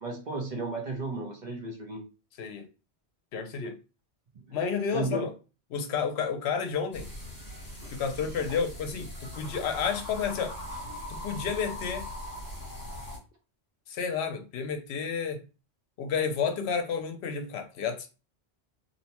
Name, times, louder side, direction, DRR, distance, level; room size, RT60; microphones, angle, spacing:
voice 1, 0.0-2.0 4.9-5.2 8.5-8.6, right 3 dB, 50° right, 0.8 m, -34 dB
voice 2, 3.3-3.8 4.5-5.3 5.7-7.1 7.9-10.6 11.1-12.1 13.9-15.4 16.0-18.1, left 6 dB, 75° left, 0.8 m, -31 dB
sound 1, 6.9-13.2, left 1 dB, 35° left, 1.2 m, -40 dB
2.7 x 2.0 x 2.9 m
omnidirectional pair, 1.1 m